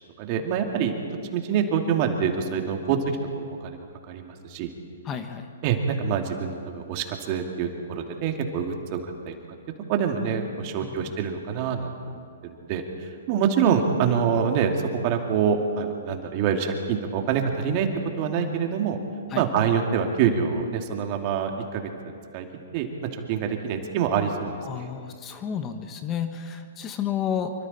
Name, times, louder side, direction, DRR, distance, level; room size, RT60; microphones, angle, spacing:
voice 1, 0.2-0.9 1.3-4.7 5.6-9.0 9.2-9.3 9.9-17.9 18.2-19.0 19.3-22.5 22.7-24.9, right 7 dB, 40° right, 3 dB, 2.5 m, -26 dB
voice 2, 5.1-5.4 19.3-19.4 24.6-27.5, left 8 dB, 25° left, 7 dB, 1.3 m, -31 dB
26.0 x 24.0 x 4.4 m, 2.3 s
hypercardioid pair, 125°, 0 cm